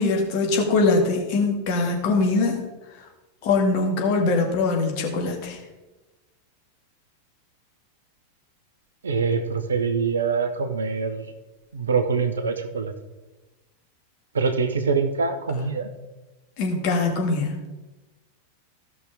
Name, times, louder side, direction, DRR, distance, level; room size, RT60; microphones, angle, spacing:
voice 1, 0.0-2.6 3.4-5.6 16.6-17.5, left 3 dB, 45° left, 1 dB, 1.9 m, -22 dB
voice 2, 9.0-11.3 11.7-12.9 14.3-15.9, right 5 dB, 70° right, 9 dB, 0.9 m, -24 dB
15.0 x 6.1 x 3.7 m, 1.1 s
figure-of-eight pair, 90°, 0 cm